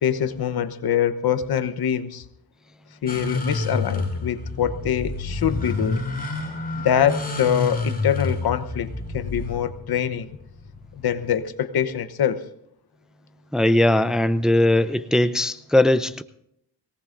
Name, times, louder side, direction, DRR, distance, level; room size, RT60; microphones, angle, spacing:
voice 1, 0.0-2.2 3.0-6.0 6.7-10.4 11.0-12.4, left 9 dB, 65° left, 12 dB, 1.0 m, -24 dB
sound 1, 3.1-11.4, left 3 dB, 20° left, 5.2 m, -29 dB
voice 2, 13.5-16.2, left 1 dB, ahead, 11 dB, 0.6 m, -19 dB
22.5 x 18.0 x 2.6 m, 0.74 s
cardioid pair, 85°, 41 cm